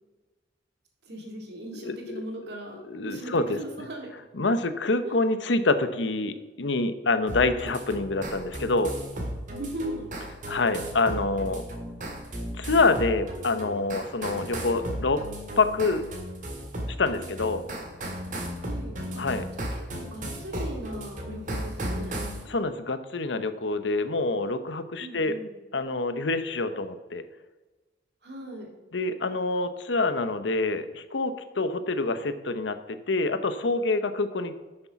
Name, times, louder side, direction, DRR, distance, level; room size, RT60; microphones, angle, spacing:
voice 1, 1.1-4.1 5.0-5.1 9.5-10.1 18.6-19.2 19.5-22.2 25.0-25.5 28.2-28.7, right 1 dB, 60° right, 1 dB, 2.2 m, -38 dB
voice 2, 1.8-2.2 2.9-3.6 4.3-8.9 10.5-11.6 12.5-15.2 15.6-16.0 17.0-17.6 19.2-19.5 22.5-25.4 25.7-27.2 28.9-34.5, left 3 dB, 80° left, 11 dB, 0.8 m, -26 dB
sound 1, 7.3-22.4, right 1 dB, 45° right, 2.0 m, -35 dB
9.7 x 6.7 x 5.8 m, 1.2 s
head